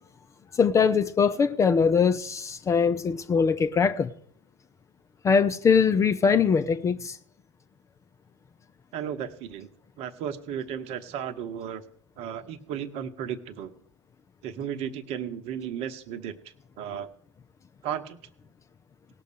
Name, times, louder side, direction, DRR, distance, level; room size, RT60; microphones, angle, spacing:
voice 1, 0.6-4.1 5.2-7.2, left 6 dB, 20° left, 0.5 m, -22 dB
voice 2, 8.9-9.7 10.0-11.8 12.2-13.7 14.4-16.3 16.8-17.1 17.8-18.2, right 9 dB, 40° right, 1.0 m, -34 dB
18.5 x 6.6 x 5.0 m
figure-of-eight pair, 85°, 16 cm